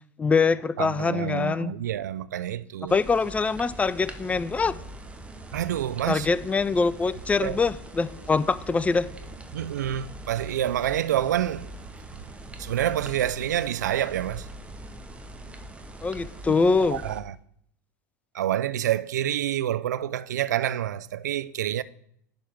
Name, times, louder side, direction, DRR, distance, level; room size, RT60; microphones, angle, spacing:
voice 1, 0.2-1.7 2.9-4.7 6.1-9.1 16.0-17.0, left 4 dB, 15° left, 0.4 m, -24 dB
voice 2, 0.8-3.0 5.5-6.3 7.4-7.6 9.5-11.7 12.6-14.5 16.5-16.6 16.9-17.3 18.3-21.8, right 11 dB, 75° right, 0.3 m, -27 dB
sound 1, 2.9-17.2, right 1 dB, 10° right, 0.8 m, -42 dB
10.5 x 3.5 x 5.9 m
figure-of-eight pair, 80°, 10 cm